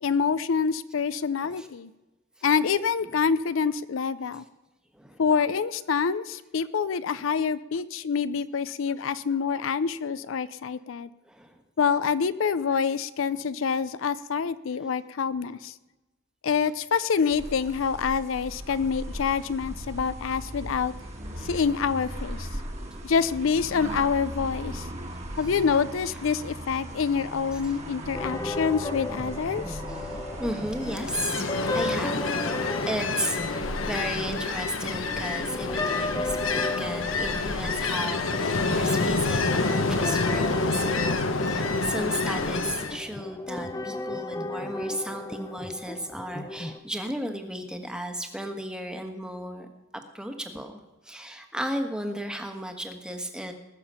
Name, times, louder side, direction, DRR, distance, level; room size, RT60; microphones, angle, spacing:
voice 1, 0.0-1.9 2.4-4.4 5.2-11.1 11.8-15.7 16.4-20.9 21.4-22.5 23.0-24.8 25.4-29.8, left 6 dB, 75° left, 15 dB, 0.5 m, -26 dB
voice 2, 11.2-11.6 13.3-13.4 14.8-14.9 15.4-15.5 21.2-21.6 25.4-25.5 26.1-26.3 27.5-27.7 28.2-28.5 29.9-31.4 31.7-32.2 32.9-41.1 41.4-49.7 50.1-50.8 51.0-53.5, right 1 dB, 5° right, 5 dB, 1.3 m, -35 dB
sound 1, 17.3-31.1, right 1 dB, 35° right, 1.9 m, -38 dB
sound 2, 28.1-46.8, left 2 dB, 20° left, 0.7 m, -35 dB
Ocean, 30.8-43.0, left 3 dB, 90° left, 1.1 m, -28 dB
20.0 x 6.8 x 5.6 m, 1.1 s
head